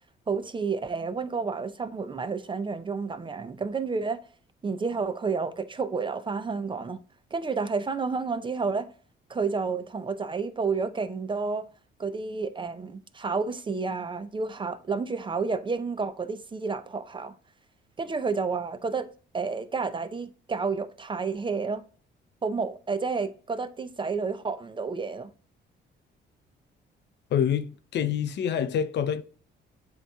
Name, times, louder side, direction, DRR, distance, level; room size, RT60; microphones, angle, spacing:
voice 1, 0.3-4.2 4.6-7.0 7.3-8.9 9.3-11.7 12.0-17.3 18.0-19.1 19.3-21.8 22.4-25.3, right 4 dB, 25° right, 0.4 m, -30 dB
voice 2, 27.3-29.2, left 8 dB, 60° left, 0.5 m, -26 dB
7.8 x 3.0 x 2.3 m
cardioid pair, 90°, 20 cm